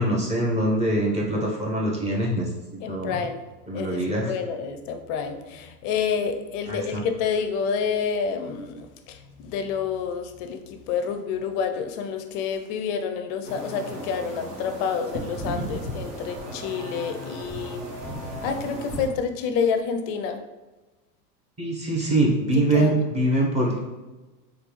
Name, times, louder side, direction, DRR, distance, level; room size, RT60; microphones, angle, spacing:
voice 1, 0.0-2.5 2.9-3.2 3.7-4.3 6.7-6.8 21.6-23.8, right 1 dB, 15° right, -3 dB, 0.7 m, -23 dB
voice 2, 2.8-3.4 3.7-4.0 4.3-17.8 18.4-20.4 22.7-23.0, left 6 dB, 45° left, 7 dB, 0.4 m, -28 dB
sound 1, 13.4-19.1, right 1 dB, 75° right, 1.1 m, -35 dB
3.4 x 2.3 x 3.0 m, 1.2 s
hypercardioid pair, 105°, 47 cm